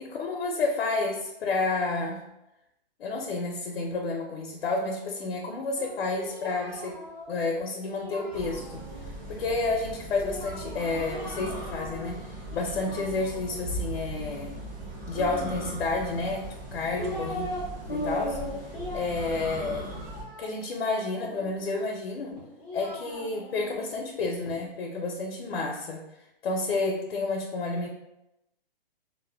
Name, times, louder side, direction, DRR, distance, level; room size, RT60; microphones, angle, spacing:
voice 1, 0.0-2.2 3.0-7.0 7.3-14.6 15.1-17.5 17.9-18.4 18.9-19.9 20.4-22.4 22.7-26.0 26.4-27.9, left 3 dB, 80° left, 0 dB, 0.5 m, -30 dB
Singing, 5.7-9.0 10.1-12.2 12.5-13.7 15.1-16.1 16.6-17.6 17.9-21.5 22.3-24.6, left 1 dB, 10° left, 0.3 m, -39 dB
sound 1, 8.3-20.2, right 1 dB, 45° right, 1.0 m, -39 dB
2.1 x 2.1 x 3.3 m, 0.91 s
hypercardioid pair, 175°, 30 cm